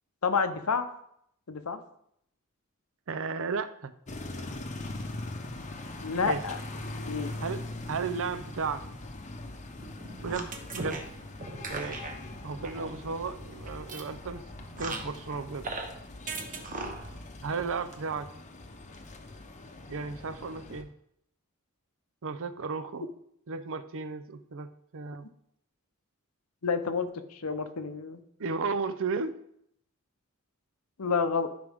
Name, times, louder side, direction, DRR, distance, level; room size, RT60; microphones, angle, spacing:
voice 1, 0.2-0.9 1.5-1.8 6.0-6.6 7.1-7.3 26.6-28.2 31.0-31.5, left 5 dB, 80° left, 10 dB, 0.8 m, -29 dB
voice 2, 3.1-3.9 6.2-6.4 7.4-8.8 10.2-11.0 11.7-12.0 12.4-14.4 14.8-15.7 17.4-18.3 19.9-20.9 22.2-23.1 23.5-25.3 28.4-29.4, right 4 dB, 65° right, 11 dB, 0.6 m, -34 dB
sound 1, 4.1-20.8, left 2 dB, 35° left, 0.8 m, -42 dB
sound 2, 9.8-15.9 16.3-17.2, right 3 dB, 40° right, 1.1 m, -39 dB
13.0 x 5.1 x 3.6 m, 0.73 s
head